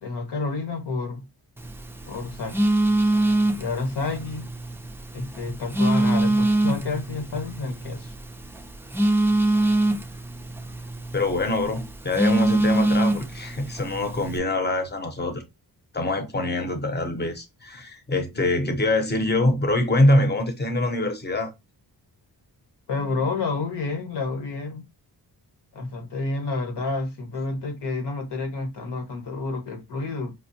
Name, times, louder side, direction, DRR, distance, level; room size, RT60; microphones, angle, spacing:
voice 1, 0.0-1.2 2.1-2.6 3.6-4.5 5.1-8.1 22.9-24.8 25.7-30.3, left 3 dB, 80° left, 1.2 m, -29 dB
Telephone, 1.6-14.4, right 2 dB, 5° right, 0.3 m, -24 dB
voice 2, 11.1-15.4 15.9-21.5, left 2 dB, 25° left, 0.8 m, -24 dB
5.1 x 2.0 x 2.7 m
wide cardioid pair, 130°, 40 cm